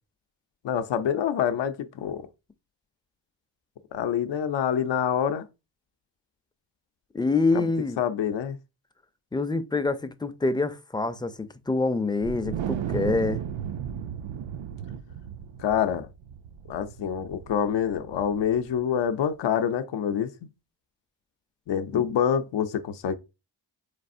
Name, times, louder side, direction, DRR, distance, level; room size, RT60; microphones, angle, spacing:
voice 1, 0.6-2.3 3.9-5.5 7.5-7.6 8.0-8.6 15.6-16.1 16.7-20.5 21.7-23.1, left 8 dB, 70° left, 0.6 m, -26 dB
voice 2, 7.1-8.0 9.3-13.4 21.9-22.0, left 3 dB, 10° left, 0.4 m, -26 dB
Wind, 12.2-18.7, right 9 dB, 75° right, 0.6 m, -35 dB
4.0 x 3.3 x 2.5 m
cardioid pair, 55°, 46 cm